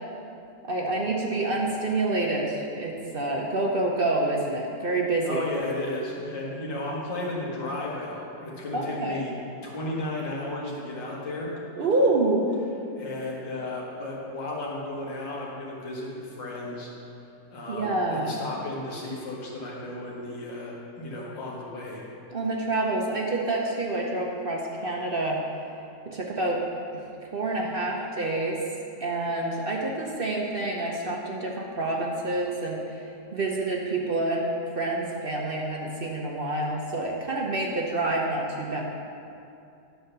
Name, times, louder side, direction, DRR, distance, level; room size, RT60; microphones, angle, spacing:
voice 1, 0.6-5.4 8.7-9.2 11.8-12.5 17.7-18.4 22.3-25.4 26.1-26.6 27.3-28.6 29.0-33.0 33.3-34.5 34.7-38.8, right 2 dB, 55° right, -2 dB, 0.6 m, -27 dB
voice 2, 5.2-9.3 9.6-11.5 13.0-16.9 17.5-22.0, left 2 dB, 85° left, -4 dB, 2.3 m, -34 dB
10.5 x 4.6 x 6.6 m, 2.7 s
omnidirectional pair, 1.9 m